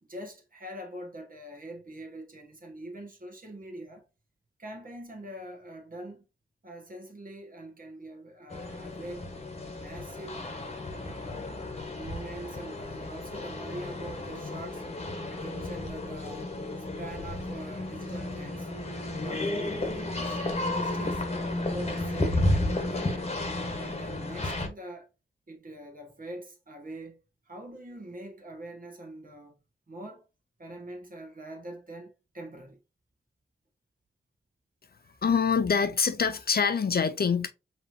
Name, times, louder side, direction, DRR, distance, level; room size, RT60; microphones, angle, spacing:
voice 1, 0.0-4.1 4.6-6.2 6.6-9.3 9.6-10.4 10.9-11.5 11.9-14.8 15.3-16.5 16.8-21.2 21.6-23.4 23.8-25.1 25.5-27.2 27.5-29.6 29.9-30.3 30.6-32.8 35.0-35.2, right 1 dB, 45° right, 1.6 m, -44 dB
sound 1, 8.5-24.7, left 2 dB, 30° left, 1.2 m, -33 dB
voice 2, 35.2-37.5, left 6 dB, 50° left, 0.5 m, -25 dB
5.2 x 3.1 x 2.8 m
cardioid pair, 65°, 20 cm